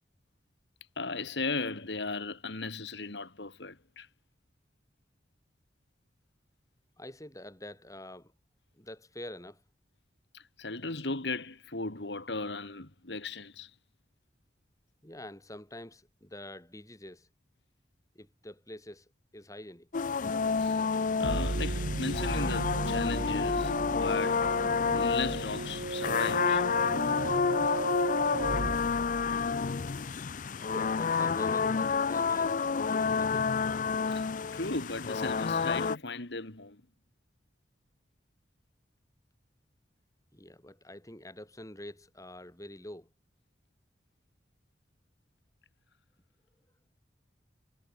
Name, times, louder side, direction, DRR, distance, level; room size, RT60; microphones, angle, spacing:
voice 1, 1.0-4.1 10.3-13.7 20.6-20.9 21.2-24.5 24.9-26.7 34.1-34.3 34.5-36.8, left 3 dB, 70° left, 2.3 m, -37 dB
voice 2, 7.0-8.3 8.8-9.6 15.0-17.3 18.1-19.1 19.3-19.9 30.6-33.6 40.3-43.1, left 1 dB, 20° left, 6.5 m, -46 dB
sound 1, 19.9-36.0, left 5 dB, 45° left, 0.5 m, -29 dB
sound 2, 21.2-29.9, right 2 dB, 65° right, 1.3 m, -35 dB
head